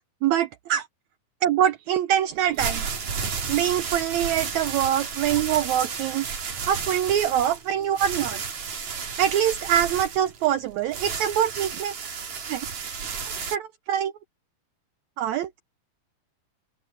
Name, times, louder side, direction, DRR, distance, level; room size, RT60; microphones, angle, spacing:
voice 1, 0.2-0.9 1.4-2.8 3.5-6.3 6.7-8.4 9.2-11.9 12.5-12.7 13.5-14.1 15.2-15.6, right 10 dB, 85° right, 1.7 m, -24 dB
sound 1, 2.4-13.6, right 6 dB, 55° right, 4.2 m, -32 dB
open air
omnidirectional pair, 3.9 m